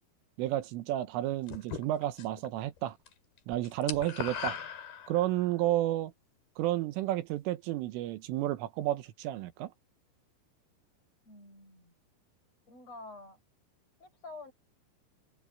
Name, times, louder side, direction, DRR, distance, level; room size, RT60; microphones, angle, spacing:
voice 1, 0.4-3.0 3.5-4.6 5.1-6.1 6.6-9.7, right 14 dB, 80° right, 3.6 m, -31 dB
sound 1, 1.5-2.5 2.8-5.5, left 7 dB, 55° left, 3.9 m, -39 dB
voice 2, 11.2-12.0 12.7-13.4 14.0-14.5, left 2 dB, 30° left, 9.0 m, -48 dB
omnidirectional pair, 5.7 m